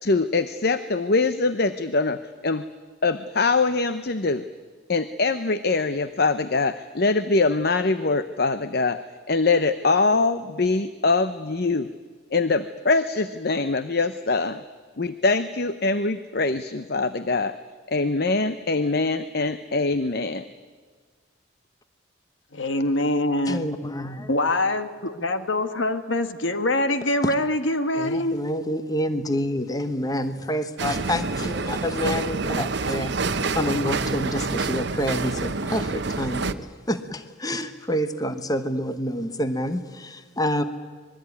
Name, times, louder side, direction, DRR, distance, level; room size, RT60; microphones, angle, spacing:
voice 1, 0.0-2.6 3.0-4.4 4.9-9.0 9.3-11.9 12.3-14.6 15.0-17.6 17.9-20.5, left 3 dB, 50° left, 12 dB, 0.8 m, -23 dB
voice 2, 22.5-23.7 24.3-28.4, left 1 dB, 70° left, 9 dB, 1.6 m, -24 dB
voice 3, 23.5-24.3 27.2-27.3 28.0-33.1 33.5-40.6, equal, 20° left, 9 dB, 1.1 m, -28 dB
sound 1, 30.8-36.5, right 3 dB, 55° right, 0.9 m, -27 dB
25.5 x 21.0 x 9.7 m, 1.5 s
head